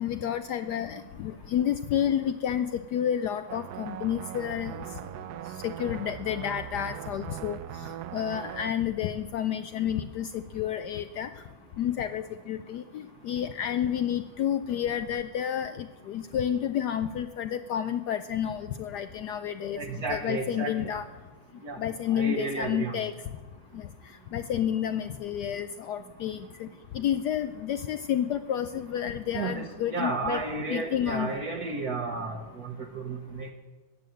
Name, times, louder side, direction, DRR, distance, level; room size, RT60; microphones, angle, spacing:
voice 1, 0.0-4.8 5.6-7.6 8.1-11.3 11.8-19.8 20.1-21.0 21.8-23.1 23.7-23.9 24.3-26.7 26.9-30.4 30.7-31.3, left 9 dB, 80° left, 10 dB, 0.9 m, -30 dB
sound 1, 3.5-8.7, right 12 dB, 90° right, 0.8 m, -40 dB
voice 2, 19.7-20.9 21.6-21.8 22.1-23.0 29.3-33.5, right 3 dB, 55° right, 3 dB, 1.3 m, -33 dB
14.0 x 9.1 x 7.7 m, 1.3 s
omnidirectional pair, 2.3 m